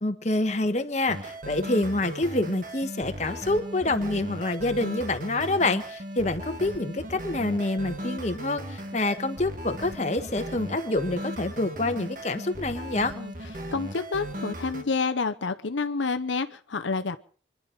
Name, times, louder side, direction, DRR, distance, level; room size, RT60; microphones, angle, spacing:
voice 1, 0.0-13.1, left 2 dB, 35° left, 7 dB, 1.3 m, -27 dB
sound 1, 1.1-14.8, equal, 45° right, 1.8 m, -37 dB
voice 2, 13.7-17.2, left 4 dB, 80° left, 9 dB, 0.8 m, -29 dB
25.5 x 10.5 x 5.2 m, 0.43 s
head